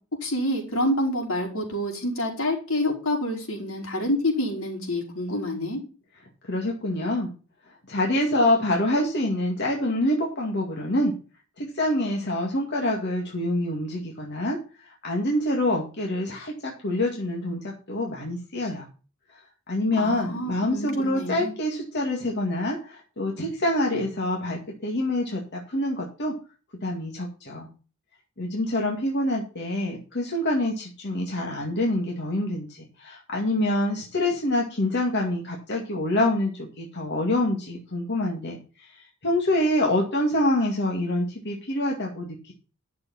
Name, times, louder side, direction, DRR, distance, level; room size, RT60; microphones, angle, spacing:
voice 1, 0.2-5.8 19.9-21.5, left 1 dB, 80° left, 5.3 m, -27 dB
voice 2, 6.4-7.3 7.9-11.2 11.6-14.6 14.8-18.9 19.3-19.4 19.7-26.4 26.8-27.7 28.4-38.9 39.2-42.5, left 1 dB, 55° left, 2.1 m, -26 dB
11.5 x 6.8 x 5.7 m
head